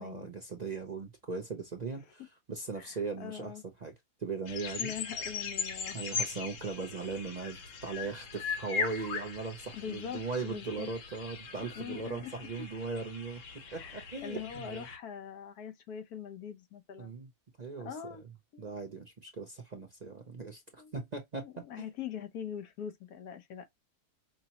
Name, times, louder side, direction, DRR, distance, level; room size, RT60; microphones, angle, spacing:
voice 1, 0.0-2.2 2.5-3.5 3.8-3.9 4.2-4.9 5.9-13.4 13.7-14.9 17.0-17.3 17.6-17.9 18.6-21.5 21.7-21.9, right 4 dB, 45° right, 0.6 m, -39 dB
voice 2, 2.8-3.6 4.8-6.0 9.7-10.9 11.8-12.3 13.6-17.2 17.8-18.2 18.5-18.7 20.8-20.9 21.4-23.7, left 8 dB, 90° left, 1.4 m, -43 dB
sound 1, 4.5-15.0, left 5 dB, 60° left, 1.2 m, -39 dB
5.3 x 2.1 x 2.8 m
omnidirectional pair, 1.6 m